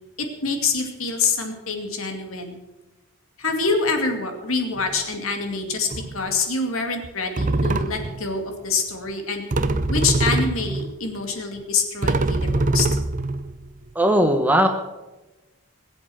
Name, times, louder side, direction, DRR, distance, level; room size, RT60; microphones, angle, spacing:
voice 1, 0.2-2.6 3.4-9.5 9.9-12.9, left 4 dB, 75° left, 4 dB, 2.4 m, -26 dB
sound 1, 4.8-5.0 5.9-6.3 7.0-7.1 7.4-8.2 9.5-11.0 11.6-11.7 12.0-13.9, right 2 dB, 35° right, 0.6 m, -23 dB
voice 2, 13.9-14.7, right 1 dB, 10° right, 5 dB, 1.0 m, -18 dB
20.5 x 8.0 x 6.4 m, 1.1 s
head